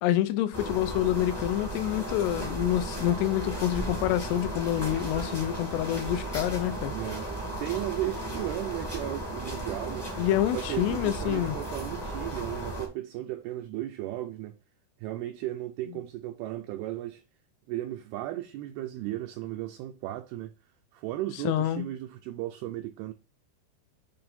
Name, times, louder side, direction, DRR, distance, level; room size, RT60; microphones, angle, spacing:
voice 1, 0.0-6.9 10.2-11.6 21.4-21.9, left 13 dB, 80° left, 2.6 m, -27 dB
sound 1, 0.5-12.9, right 1 dB, 25° left, 0.5 m, -35 dB
voice 2, 6.9-7.3 7.6-10.1 10.5-14.6 15.0-17.2 17.7-20.5 20.9-23.1, right 14 dB, 85° right, 2.2 m, -35 dB
8.8 x 3.4 x 4.2 m
omnidirectional pair, 5.1 m